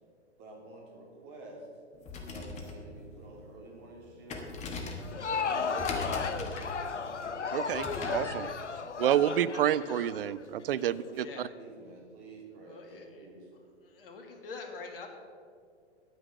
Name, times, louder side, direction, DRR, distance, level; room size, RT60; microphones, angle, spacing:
voice 1, 0.4-1.7 2.3-6.5 8.4-9.2 10.8-13.5, right 2 dB, 30° right, -1 dB, 3.1 m, -50 dB
sound 1, 1.9-8.3, left 3 dB, 20° left, 1.4 m, -41 dB
Crowd, 4.9-10.8, left 5 dB, 80° left, 0.8 m, -34 dB
voice 2, 7.5-8.5 9.0-11.5, right 11 dB, 55° right, 17 dB, 0.4 m, -29 dB
voice 3, 12.6-13.3 13.8-15.1, left 4 dB, 50° left, 4 dB, 2.0 m, -45 dB
9.7 x 9.2 x 6.4 m, 2.2 s
figure-of-eight pair, 110°, 35 cm